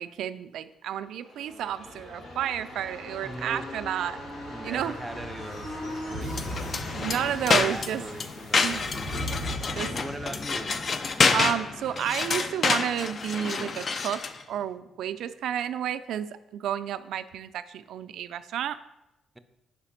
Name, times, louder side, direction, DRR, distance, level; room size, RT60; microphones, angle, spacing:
voice 1, 0.0-4.2 4.6-5.0 6.9-8.0 8.6-8.8 9.3-9.5 9.8-9.9 11.3-14.2 14.5-18.8, right 10 dB, 75° right, 13 dB, 0.3 m, -31 dB
sound 1, 1.1-14.6 14.9-15.0, left 1 dB, 90° left, 2.3 m, -39 dB
voice 2, 3.2-3.7 4.5-6.7 7.6-8.9 9.6-10.8, right 1 dB, 10° right, 9 dB, 0.5 m, -40 dB
sound 2, 6.3-14.4, left 4 dB, 45° left, 0.4 m, -28 dB
5.1 x 4.9 x 5.8 m, 0.95 s
cardioid pair, 90°, 0 cm